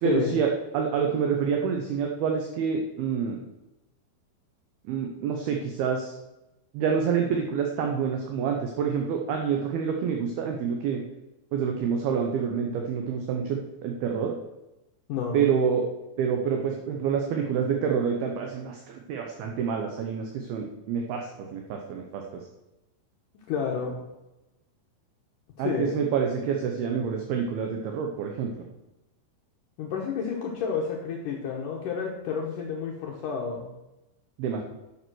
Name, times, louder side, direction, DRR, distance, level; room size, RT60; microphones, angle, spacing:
voice 1, 0.0-3.4 4.8-6.1 6.7-11.0 11.5-14.4 15.3-15.9 16.2-22.5 25.6-28.6 34.4-34.6, right 6 dB, 75° right, 2 dB, 2.4 m, -27 dB
voice 2, 15.1-15.5 23.5-24.0 25.6-25.9 29.8-33.7, left 6 dB, 85° left, -1 dB, 1.8 m, -30 dB
11.0 x 7.0 x 6.2 m, 0.97 s
omnidirectional pair, 5.6 m